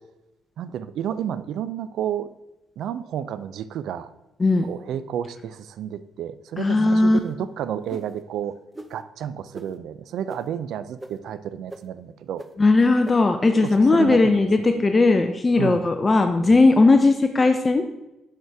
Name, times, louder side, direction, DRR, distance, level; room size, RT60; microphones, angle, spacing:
voice 1, 0.6-2.3 2.8-4.1 4.6-8.6 8.9-12.4 13.6-14.4 14.8-14.9 15.6-15.8, right 9 dB, 75° right, 14 dB, 0.3 m, -31 dB
voice 2, 6.6-7.2 12.6-17.9, left 3 dB, 25° left, 7 dB, 0.5 m, -18 dB
sound 1, 6.7-7.2 7.9-8.1 8.7-8.9 9.5-9.7 10.3-10.4 11.0-11.1 11.7-11.8 12.4-12.5 13.0-13.1 13.7-13.8, right 2 dB, 20° right, 0.6 m, -37 dB
6.4 x 6.3 x 3.4 m, 0.95 s
cardioid pair, 90°, 0 cm